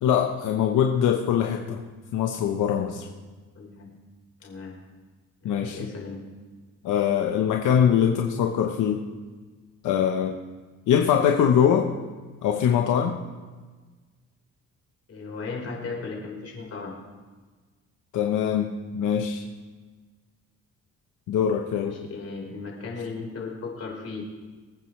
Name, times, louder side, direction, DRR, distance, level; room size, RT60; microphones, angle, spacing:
voice 1, 0.0-1.8 2.1-3.1 5.4-5.8 6.8-9.0 9.8-10.3 10.9-11.9 12.4-13.2 18.1-19.4 21.3-22.0, left 8 dB, 80° left, 2 dB, 1.0 m, -22 dB
voice 2, 3.5-3.9 4.4-4.8 5.4-6.2 15.1-17.0 21.7-24.2, left 4 dB, 55° left, -2 dB, 4.5 m, -36 dB
24.5 x 9.1 x 3.3 m, 1.4 s
cardioid pair, 90°, 30 cm